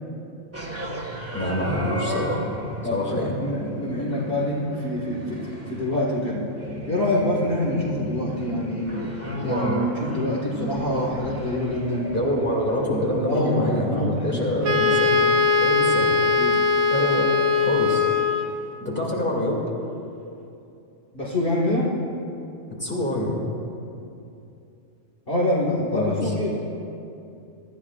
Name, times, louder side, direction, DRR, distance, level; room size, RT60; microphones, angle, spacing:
sound 1, 0.5-13.9, equal, 10° right, 1.6 m, -33 dB
voice 1, 1.3-2.4 2.9-3.4 12.1-15.1 15.6-16.1 16.9-17.3 17.6-18.1 18.8-19.6 22.7-23.4 25.9-26.3, left 1 dB, 10° left, -3 dB, 2.5 m, -26 dB
voice 2, 2.8-6.4 6.9-9.1 9.4-12.1 13.2-15.4 16.4-16.6 21.1-21.9 25.3-26.6, left 1 dB, 45° left, -5 dB, 2.0 m, -26 dB
Wind instrument woodwind instrument, 14.6-18.7, left 4 dB, 70° right, 1.0 m, -20 dB
23.5 x 13.0 x 2.5 m, 2.7 s
omnidirectional pair, 1.4 m